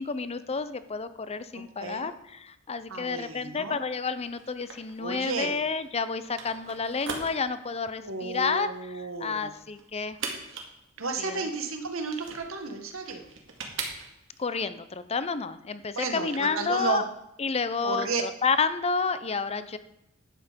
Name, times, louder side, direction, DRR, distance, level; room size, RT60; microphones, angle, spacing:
voice 1, 0.0-8.7 9.2-10.2 11.2-11.5 14.4-17.0 17.4-19.8, left 5 dB, 30° left, 13 dB, 0.6 m, -30 dB
voice 2, 2.9-3.8 5.0-5.6 8.0-9.6 11.0-13.3 16.0-17.0 17.8-18.2, right 4 dB, 85° right, 5 dB, 1.7 m, -32 dB
sound 1, 4.2-14.4, right 4 dB, 65° right, 2.2 m, -41 dB
11.0 x 8.2 x 5.2 m, 0.83 s
head